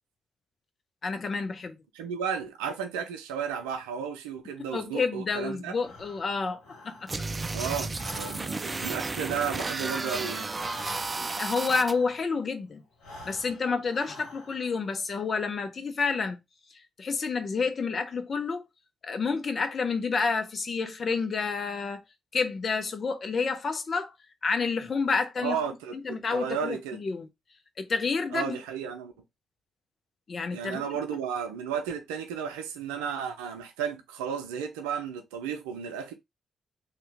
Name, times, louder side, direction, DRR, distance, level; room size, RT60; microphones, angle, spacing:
voice 1, 1.0-1.8 4.7-7.1 11.2-12.8 13.2-16.4 17.0-18.6 19.0-22.0 22.3-24.1 24.4-25.6 26.0-27.3 27.8-28.6 30.3-30.8, left 4 dB, 50° left, 0.7 m, -29 dB
voice 2, 1.9-5.8 7.5-10.5 25.4-27.0 28.3-29.1 30.5-36.1, right 7 dB, 80° right, 0.5 m, -33 dB
Breathing, 5.8-7.5 7.8-12.4 12.9-14.8, left 1 dB, 80° left, 1.1 m, -48 dB
sound 1, 7.1-11.9, right 3 dB, 30° right, 0.4 m, -33 dB
2.9 x 2.4 x 3.4 m
hypercardioid pair, 40°, 0 cm